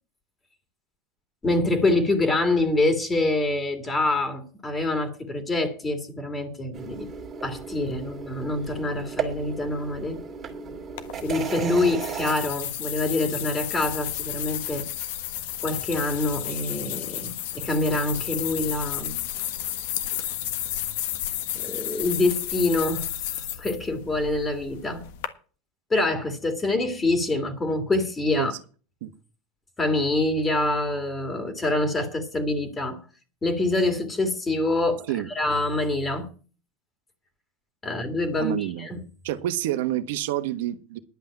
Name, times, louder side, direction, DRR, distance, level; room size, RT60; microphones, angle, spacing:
voice 1, 1.4-7.1 7.4-10.2 11.2-14.8 15.6-19.2 21.5-25.0 25.9-28.5 29.8-33.0 33.4-35.1 35.3-36.3 37.8-39.0, left 2 dB, 15° left, 2.2 m, -25 dB
sound 1, 6.7-12.3, right 6 dB, 25° right, 2.3 m, -35 dB
sound 2, 11.0-25.3, left 12 dB, 70° left, 1.4 m, -32 dB
voice 2, 38.4-38.9 39.2-41.0, right 13 dB, 75° right, 1.2 m, -28 dB
11.0 x 5.8 x 8.9 m
supercardioid pair, 125°, 0 cm